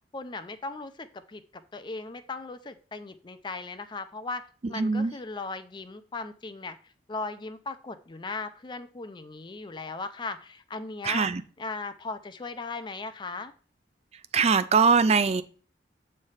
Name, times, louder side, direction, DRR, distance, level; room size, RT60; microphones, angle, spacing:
voice 1, 0.1-4.4 4.7-6.8 7.1-11.3 11.6-13.5, left 3 dB, 25° left, 0.4 m, -37 dB
voice 2, 4.7-5.1 11.0-11.4 14.3-15.4, right 5 dB, 35° right, 0.4 m, -22 dB
7.7 x 3.2 x 5.5 m
head